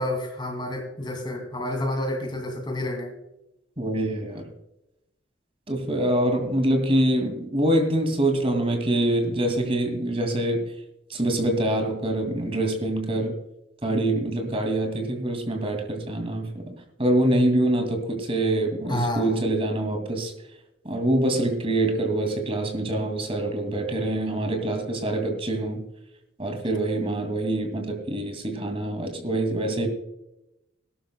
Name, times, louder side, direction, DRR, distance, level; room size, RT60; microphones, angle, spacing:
voice 1, 0.0-3.1 6.9-7.0 18.9-19.4, left 1 dB, 25° left, 4 dB, 2.4 m, -29 dB
voice 2, 3.8-4.5 5.7-10.7 11.1-13.4 13.8-20.3 20.8-25.8 26.4-29.9, right 1 dB, 30° right, 6 dB, 2.3 m, -25 dB
19.0 x 12.0 x 2.2 m, 0.87 s
head